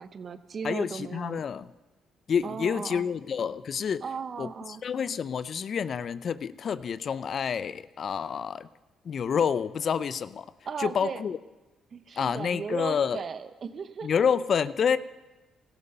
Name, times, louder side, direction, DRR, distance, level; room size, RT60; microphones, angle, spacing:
voice 1, 0.0-1.4 2.4-3.1 4.0-4.8 10.7-11.2 11.9-14.3, right 6 dB, 50° right, 12 dB, 0.9 m, -36 dB
voice 2, 0.6-1.7 2.3-4.0 4.4-4.5 4.8-8.7 9.0-10.5 10.8-11.4 12.2-13.2 14.0-15.0, left 7 dB, 55° left, 16 dB, 0.5 m, -28 dB
17.5 x 13.0 x 5.5 m, 1.1 s
supercardioid pair, 60°, 0 cm